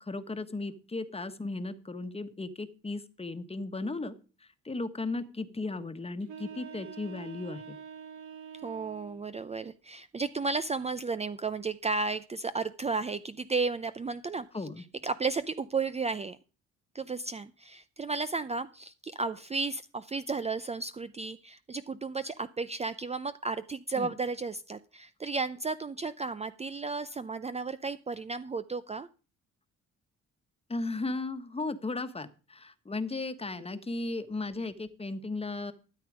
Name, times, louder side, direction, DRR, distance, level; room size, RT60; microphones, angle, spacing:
voice 1, 0.0-4.1 4.4-7.8 14.5-14.8 24.0-24.1 30.7-35.7, left 3 dB, 20° left, 10 dB, 1.4 m, -36 dB
sound 1, 6.2-9.2, right 7 dB, 75° right, 2.9 m, -45 dB
voice 2, 8.6-14.5 15.0-16.4 16.9-29.1, right 4 dB, 20° right, 13 dB, 0.5 m, -33 dB
13.0 x 8.7 x 5.0 m, 0.36 s
cardioid pair, 90°, 30 cm